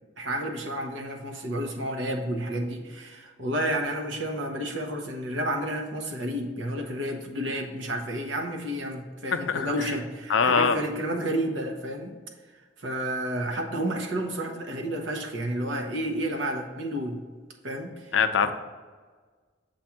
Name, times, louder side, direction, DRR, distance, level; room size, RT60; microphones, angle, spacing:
voice 1, 0.2-12.1 12.8-17.2 17.6-18.1, right 1 dB, 75° right, 3 dB, 0.9 m, -31 dB
voice 2, 9.3-9.7 10.3-10.8 18.1-18.5, left 6 dB, 85° left, 8 dB, 0.5 m, -22 dB
7.3 x 2.6 x 5.8 m, 1.5 s
head